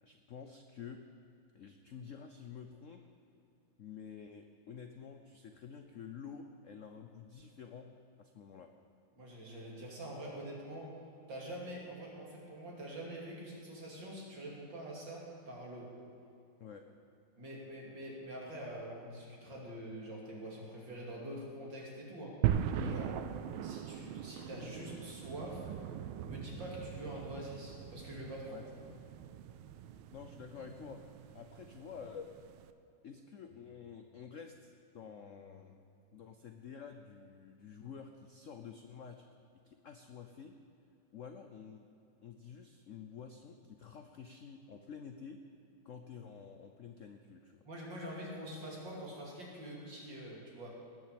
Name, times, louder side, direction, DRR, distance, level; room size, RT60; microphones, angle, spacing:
voice 1, 0.0-1.0 1.5-3.0 3.8-7.9 8.2-8.7 16.6-16.8 22.8-23.0 28.5-29.0 30.1-31.1 31.3-32.5 33.0-35.8 36.1-39.3 39.6-40.5 41.1-41.8 42.2-45.4 45.8-47.6, left 6 dB, 70° left, 6 dB, 0.7 m, -49 dB
voice 2, 9.2-10.9 11.3-15.9 17.4-22.3 22.8-23.1 23.6-25.7 26.2-28.6 47.6-50.7, right 1 dB, 65° right, -3 dB, 3.4 m, -45 dB
sound 1, 22.4-32.7, right 10 dB, 90° right, 1.5 m, -40 dB
18.5 x 7.3 x 7.6 m, 2.7 s
omnidirectional pair, 2.2 m